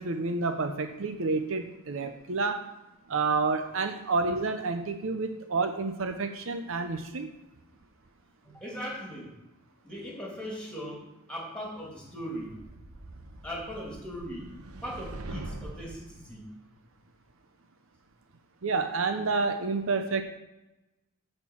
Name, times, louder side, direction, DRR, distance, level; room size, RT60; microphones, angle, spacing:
voice 1, 0.0-2.7 3.1-7.3 18.6-20.2, right 4 dB, 60° right, 7 dB, 0.7 m, -29 dB
voice 2, 8.4-9.3 9.8-12.5 13.4-14.5 14.8-16.5, equal, 5° left, -3 dB, 2.7 m, -39 dB
sound 1, 12.4-16.1, right 2 dB, 80° right, 1.0 m, -43 dB
10.5 x 4.5 x 7.3 m, 0.98 s
head